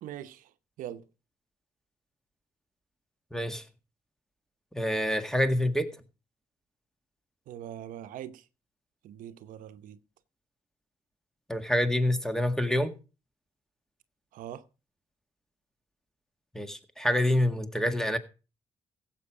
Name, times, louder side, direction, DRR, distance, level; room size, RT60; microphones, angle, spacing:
voice 1, 0.0-0.5 0.8-1.0 7.5-8.4 9.0-10.0 14.3-14.6, right 11 dB, 85° right, 0.8 m, -42 dB
voice 2, 3.3-3.6 4.7-5.9 11.5-12.9 16.5-18.2, left 1 dB, 5° left, 1.7 m, -27 dB
15.5 x 7.8 x 4.8 m
cardioid pair, 75°, 14 cm